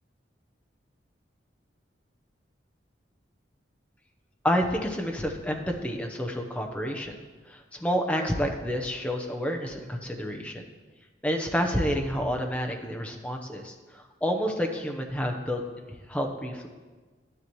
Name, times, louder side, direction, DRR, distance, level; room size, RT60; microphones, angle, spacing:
voice 1, 4.4-7.2 7.5-10.6 11.2-16.7, equal, 5° left, 2 dB, 0.8 m, -29 dB
11.5 x 9.9 x 3.1 m, 1.4 s
head